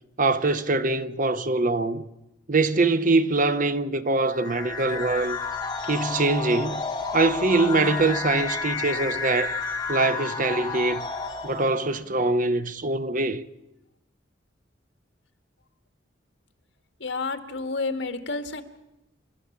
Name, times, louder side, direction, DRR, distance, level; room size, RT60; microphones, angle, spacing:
voice 1, 0.2-2.1 2.5-5.4 5.8-6.8 7.1-9.6 9.9-11.0 11.4-13.5, right 3 dB, 45° right, 0.8 m, -23 dB
sound 1, 4.3-11.9, left 4 dB, 20° left, 1.9 m, -31 dB
voice 2, 17.0-18.6, left 3 dB, 75° left, 1.8 m, -30 dB
28.5 x 12.5 x 7.3 m
head